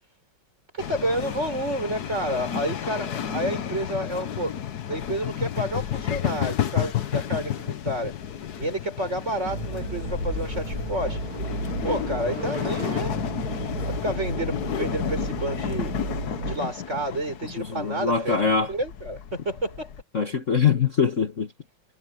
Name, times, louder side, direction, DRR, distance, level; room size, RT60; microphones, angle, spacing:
voice 1, 0.7-4.5 4.9-8.1 8.6-11.2 11.8-13.1 13.8-15.9 16.4-18.4 18.7-19.9, right 1 dB, 30° right, 6.6 m, -30 dB
sound 1, 0.8-20.0, left 9 dB, 55° left, 1.4 m, -31 dB
sound 2, 9.5-16.6, right 3 dB, 70° right, 3.3 m, -33 dB
voice 2, 17.6-18.7 20.1-21.5, left 6 dB, 40° left, 1.8 m, -23 dB
omnidirectional pair, 2.3 m